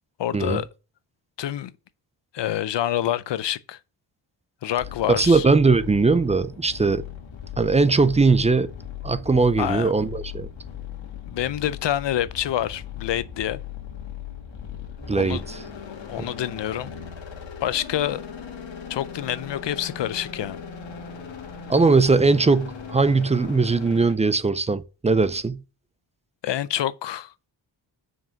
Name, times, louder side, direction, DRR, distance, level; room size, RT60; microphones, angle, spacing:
voice 1, 0.2-0.7 1.4-1.7 2.3-3.8 4.6-5.5 9.6-9.9 11.3-13.6 15.2-15.4 15.9-16.9 17.6-18.2 18.9-20.6 26.4-27.3, left 11 dB, 70° left, 0.6 m, -27 dB
sound 1, 4.8-24.1, left 7 dB, 85° left, 1.8 m, -38 dB
voice 2, 5.1-7.0 7.6-8.7 9.0-10.5 15.1-15.6 16.2-16.3 21.7-25.6, right 4 dB, 15° right, 0.4 m, -20 dB
6.0 x 4.8 x 5.8 m
wide cardioid pair, 115°, 44 cm